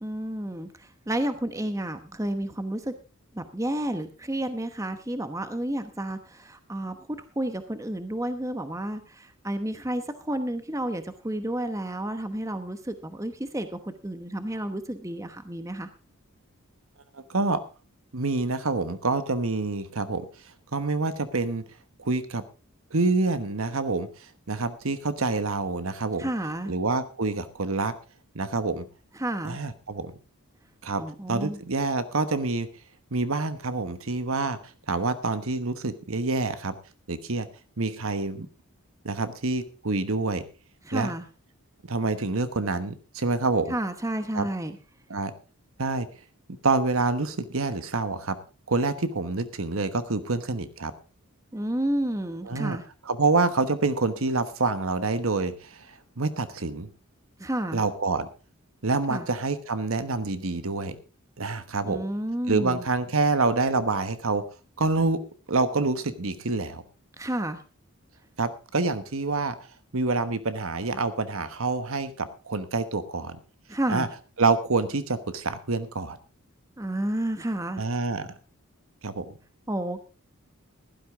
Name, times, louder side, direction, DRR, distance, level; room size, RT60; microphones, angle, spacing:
voice 1, 0.0-2.9 3.3-7.0 7.4-15.9 26.2-26.7 29.2-29.6 31.0-31.6 40.8-41.3 43.7-44.8 51.5-52.8 57.4-57.8 59.1-59.3 61.8-62.8 67.2-67.6 73.7-74.1 76.8-77.8 79.7-80.0, right 1 dB, 15° right, 9 dB, 0.9 m, -31 dB
voice 2, 17.1-17.6 18.1-20.2 20.7-21.6 22.0-22.4 22.9-26.3 26.7-27.9 28.3-28.9 29.4-30.1 30.8-31.0 31.3-32.7 33.1-34.6 34.9-36.7 37.1-37.5 37.8-38.5 39.0-40.4 40.9-41.1 41.9-43.7 44.3-44.5 45.1-45.3 45.8-46.1 46.6-48.4 48.7-50.9 52.5-52.8 53.0-56.9 57.7-58.3 58.8-61.0 61.4-62.0 62.5-64.5 64.8-65.2 65.5-66.8 68.4-69.6 69.9-73.4 73.9-74.1 74.4-76.2 77.8-78.3 79.0-79.4, right 3 dB, 70° right, 11 dB, 1.2 m, -27 dB
15.5 x 12.0 x 3.6 m, 0.34 s
head